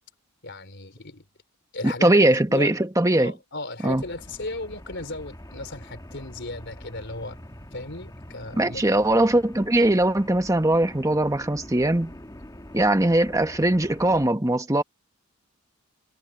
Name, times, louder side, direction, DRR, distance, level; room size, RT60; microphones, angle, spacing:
voice 1, 0.4-1.3 1.7-2.7 3.2-7.4 7.7-9.0, left 2 dB, 50° left, 4.0 m, -36 dB
voice 2, 1.8-3.3 3.8-4.0 8.6-12.1 12.7-14.8, right 1 dB, 15° right, 1.2 m, -21 dB
sound 1, 3.9-14.3, left 1 dB, 15° left, 2.1 m, -44 dB
head